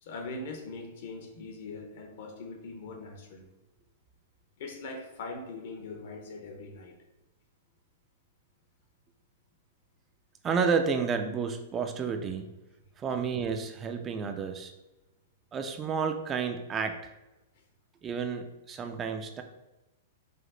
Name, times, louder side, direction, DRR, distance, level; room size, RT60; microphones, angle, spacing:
voice 1, 0.0-3.5 4.6-6.9, left 3 dB, 60° left, 3 dB, 0.9 m, -41 dB
voice 2, 10.4-12.5 13.0-14.7 15.5-17.1 18.0-19.4, right 5 dB, 20° right, 6 dB, 0.3 m, -31 dB
4.9 x 2.0 x 3.8 m, 1.0 s
hypercardioid pair, 145°, 0 cm